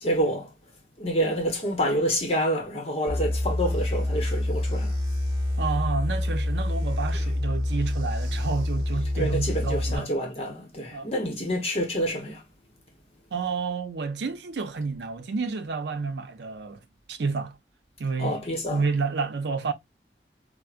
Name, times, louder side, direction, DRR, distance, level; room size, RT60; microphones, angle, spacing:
voice 1, 0.0-0.5 1.0-4.9 7.1-7.2 9.1-12.4 18.2-18.8, equal, 35° left, 0.9 m, -28 dB
sound 1, 3.1-10.0, left 1 dB, 20° right, 1.2 m, -27 dB
voice 2, 5.6-10.1 10.9-11.1 13.3-16.8 17.1-17.6 18.0-18.4 18.7-19.7, right 4 dB, 80° right, 0.5 m, -30 dB
4.5 x 2.1 x 2.3 m
head